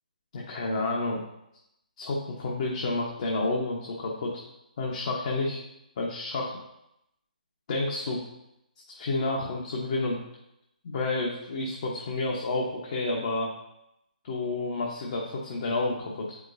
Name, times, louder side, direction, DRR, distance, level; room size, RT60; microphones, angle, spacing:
voice 1, 0.3-1.2 2.0-4.4 4.8-5.6 6.0-6.6 7.7-8.2 8.9-10.2 10.8-13.5 14.2-16.4, left 2 dB, 50° left, -3 dB, 1.1 m, -30 dB
7.5 x 5.2 x 2.6 m, 0.83 s
hypercardioid pair, 150°, 5 cm